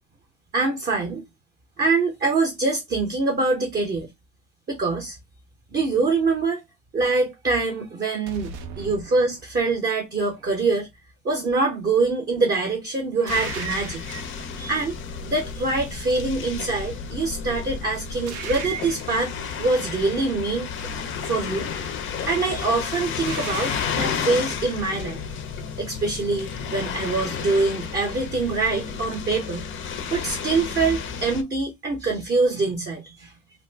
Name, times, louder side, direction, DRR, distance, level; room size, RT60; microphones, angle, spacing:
voice 1, 0.5-1.2 1.8-4.1 4.7-5.2 5.7-6.6 6.9-10.9 11.2-14.0 14.6-15.0 15.2-19.3 19.6-20.7 21.2-21.7 22.2-25.2 25.8-29.7 30.1-33.3, right 3 dB, 25° right, 0.6 m, -24 dB
sound 1, 8.3-9.9 13.3-14.4 18.3-19.4 23.3-24.2, right 7 dB, 80° right, 0.7 m, -36 dB
sound 2, 13.3-31.4, left 6 dB, 35° left, 0.4 m, -32 dB
2.5 x 2.4 x 3.2 m
cardioid pair, 160°, 38 cm